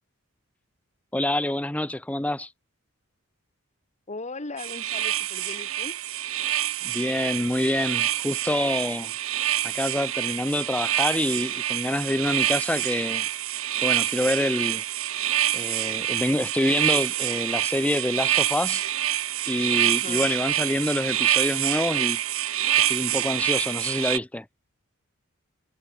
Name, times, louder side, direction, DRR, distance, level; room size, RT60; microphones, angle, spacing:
voice 1, 1.1-2.5 6.8-9.1 9.6-13.3 13.8-14.8 15.5-18.8 19.5-22.2 22.9-24.5, left 1 dB, 5° left, 0.5 m, -26 dB
voice 2, 4.1-6.0 20.0-20.3, left 3 dB, 35° left, 1.6 m, -38 dB
sound 1, 4.6-24.2, right 12 dB, 70° right, 2.1 m, -26 dB
head